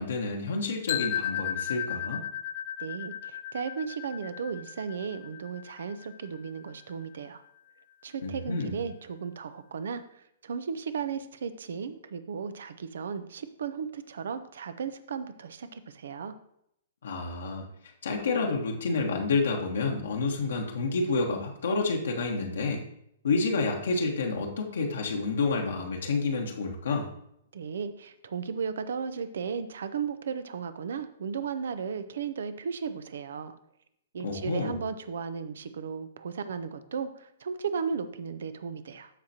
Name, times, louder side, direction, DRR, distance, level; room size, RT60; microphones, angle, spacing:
voice 1, 0.0-2.2 8.2-8.8 17.0-17.7 18.0-22.8 23.2-27.1 34.2-34.8, left 3 dB, 70° left, 0 dB, 1.3 m, -29 dB
sound 1, 0.9-6.8, left 10 dB, 55° left, 0.7 m, -35 dB
voice 2, 2.8-7.4 8.0-10.0 10.4-16.3 27.5-33.5 34.1-39.1, right 6 dB, 70° right, 12 dB, 0.7 m, -35 dB
13.5 x 5.0 x 2.9 m, 0.74 s
hypercardioid pair, 120°, 0 cm